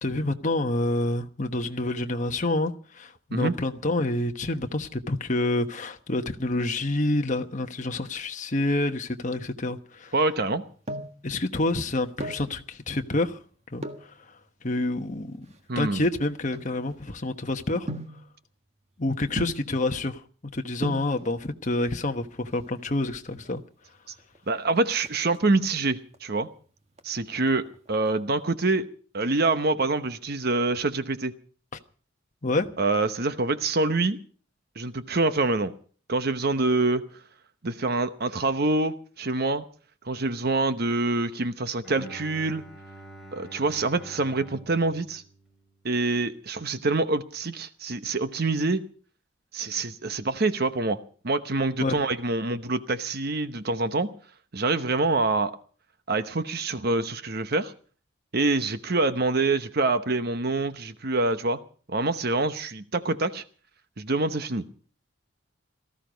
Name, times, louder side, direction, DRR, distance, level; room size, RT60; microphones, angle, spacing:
voice 1, 0.0-10.1 11.2-13.4 13.7-13.8 14.6-15.5 15.7-17.9 19.0-20.2 20.5-23.6 32.4-32.7 51.8-52.0, left 2 dB, 40° left, 1.2 m, -28 dB
voice 2, 10.1-10.6 15.7-16.1 24.5-26.5 27.0-28.9 29.1-31.3 32.8-34.2 34.8-35.7 36.1-37.0 37.6-39.6 40.1-42.6 43.3-45.2 45.8-48.8 49.5-51.0 51.2-54.1 54.5-55.5 56.1-57.7 58.3-61.6 61.9-63.4 64.0-64.7, right 3 dB, 50° right, 1.0 m, -26 dB
sound 1, 10.4-11.3 12.0-12.5 13.8-14.1 14.9-17.3 17.9-18.3 19.4-19.8 20.5-20.6 20.8-21.2 22.3-22.8 23.1-23.2 23.4-23.6 24.0-24.4 24.7-25.7 26.1-26.6 26.9-28.1 28.4-28.5, right 1 dB, 30° right, 1.5 m, -37 dB
Bowed string instrument, 41.8-46.0, right 2 dB, ahead, 5.8 m, -46 dB
18.5 x 14.0 x 5.2 m
head